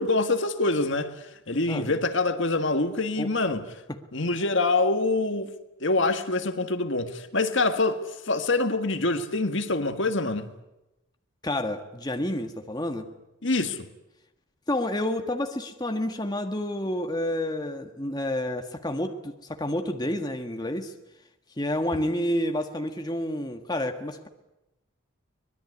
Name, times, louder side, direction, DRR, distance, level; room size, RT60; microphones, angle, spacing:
voice 1, 0.0-3.6 4.1-5.5 5.8-10.5 13.4-13.8, left 2 dB, 60° left, 1.7 m, -25 dB
voice 2, 11.4-13.1 14.7-20.9 21.6-24.3, left 1 dB, 20° left, 1.5 m, -29 dB
24.5 x 20.0 x 9.7 m
head